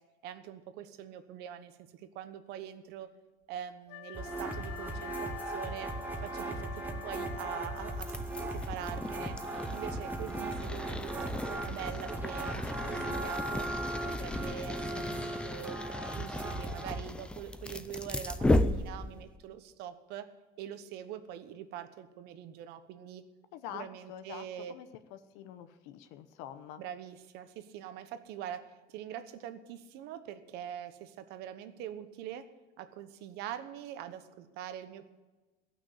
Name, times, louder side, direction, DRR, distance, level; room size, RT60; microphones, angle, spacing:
voice 1, 0.2-3.1 3.5-5.9 6.2-9.4 9.7-13.7 14.0-15.8 16.1-20.3 20.6-23.2 23.7-24.7 26.8-28.6 28.9-32.4 32.8-35.1, right 10 dB, 65° right, 10 dB, 1.1 m, -44 dB
Wind instrument woodwind instrument, 3.9-8.3, left 15 dB, 65° left, 0.5 m, -48 dB
sound 1, 4.1-17.0, right 2 dB, 10° right, 1.2 m, -38 dB
sound 2, 7.8-19.4, left 1 dB, 5° left, 0.4 m, -35 dB
voice 2, 23.5-26.8, left 10 dB, 85° left, 10 dB, 0.9 m, -46 dB
15.5 x 6.1 x 8.2 m, 1.2 s
cardioid pair, 170°, 18 cm